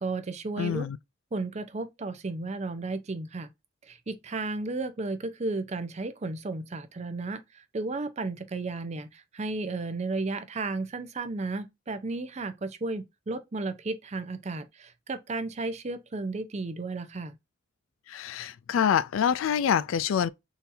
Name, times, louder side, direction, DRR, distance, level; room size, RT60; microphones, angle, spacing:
voice 1, 0.0-0.9 1.3-3.5 3.9-17.3, right 3 dB, 35° right, 0.5 m, -33 dB
voice 2, 0.6-1.0 18.1-20.3, left 8 dB, 80° left, 0.3 m, -26 dB
3.8 x 2.8 x 2.5 m
head